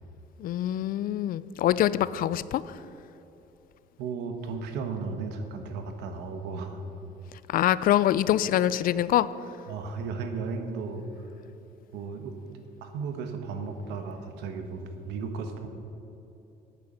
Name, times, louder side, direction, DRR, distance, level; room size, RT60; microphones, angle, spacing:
voice 1, 0.4-2.8 7.5-9.3, left 12 dB, 60° left, 17 dB, 0.4 m, -25 dB
voice 2, 4.0-6.8 9.7-11.3 11.9-12.4 12.8-15.7, right 4 dB, 85° right, 6 dB, 1.2 m, -35 dB
9.1 x 8.6 x 6.7 m, 2.9 s
cardioid pair, 110°, 17 cm